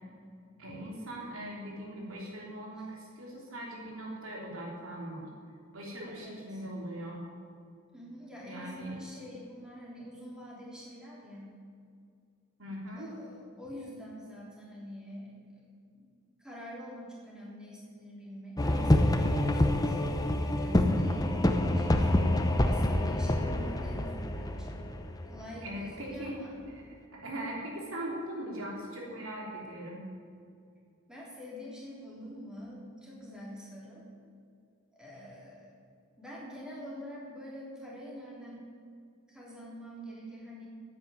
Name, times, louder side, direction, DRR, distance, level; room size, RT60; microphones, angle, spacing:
voice 1, 0.6-5.3 5.7-7.2 8.4-9.0 12.6-13.1 25.6-26.4 27.1-30.0, right 1 dB, 80° right, -2 dB, 3.4 m, -40 dB
voice 2, 6.1-6.6 7.9-11.6 12.9-15.3 15.9-16.1 16.4-22.3 22.6-24.8 25.3-26.5 31.1-34.0 35.0-35.7 36.2-38.7 39.3-40.7, equal, 5° right, -6 dB, 3.4 m, -46 dB
sound 1, 18.6-26.1, left 1 dB, 20° left, 0.7 m, -27 dB
10.5 x 8.7 x 9.2 m, 2.3 s
head